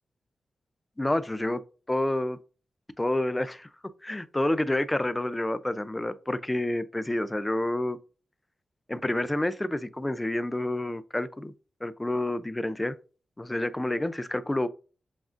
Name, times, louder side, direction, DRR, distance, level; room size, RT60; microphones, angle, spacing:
voice 1, 1.0-1.6 1.9-2.4 3.0-3.7 4.0-8.0 8.9-11.5 11.8-13.0 13.4-14.7, left 1 dB, 20° left, 0.3 m, -28 dB
7.0 x 2.4 x 2.4 m
cardioid pair, 55°, 0 cm